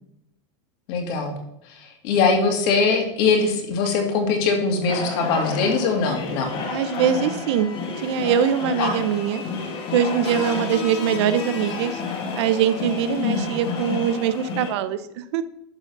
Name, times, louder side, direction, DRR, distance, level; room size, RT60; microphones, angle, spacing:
voice 1, 0.9-1.4 1.7-6.5 8.8-9.0 13.0-13.5, left 4 dB, 50° left, 3 dB, 2.2 m, -22 dB
sound 1, 4.9-14.7, left 4 dB, 35° left, 1.7 m, -30 dB
voice 2, 6.7-7.7 8.0-9.4 9.9-12.0 12.4-15.4, right 9 dB, 60° right, 14 dB, 0.6 m, -22 dB
11.5 x 4.0 x 5.9 m, 0.81 s
supercardioid pair, 155°, 16 cm